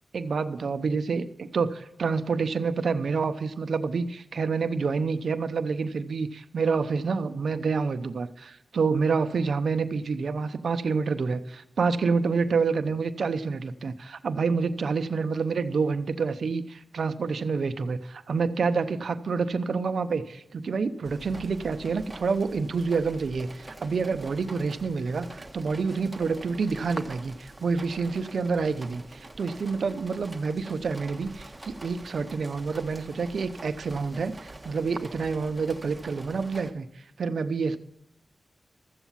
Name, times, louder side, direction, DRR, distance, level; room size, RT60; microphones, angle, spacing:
voice 1, 0.1-1.2 1.5-1.7 2.0-36.9 37.2-37.8, right 5 dB, 75° right, 10 dB, 0.7 m, -28 dB
sound 1, 21.0-36.7, right 2 dB, 20° right, 1.5 m, -45 dB
13.5 x 8.1 x 7.4 m, 0.80 s
cardioid pair, 65°, 0 cm